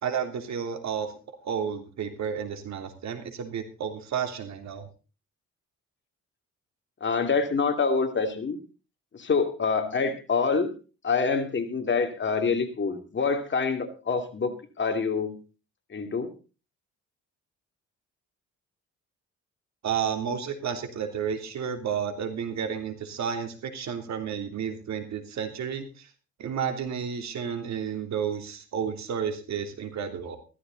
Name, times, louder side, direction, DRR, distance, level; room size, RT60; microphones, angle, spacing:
voice 1, 0.0-1.1 1.4-4.8 19.8-26.1 26.4-30.4, right 7 dB, 65° right, 7 dB, 3.2 m, -31 dB
voice 2, 7.0-8.6 9.2-10.7 11.0-15.4 15.9-16.3, left 5 dB, 40° left, 7 dB, 2.7 m, -26 dB
15.0 x 13.5 x 4.0 m, 0.34 s
cardioid pair, 90°, 30 cm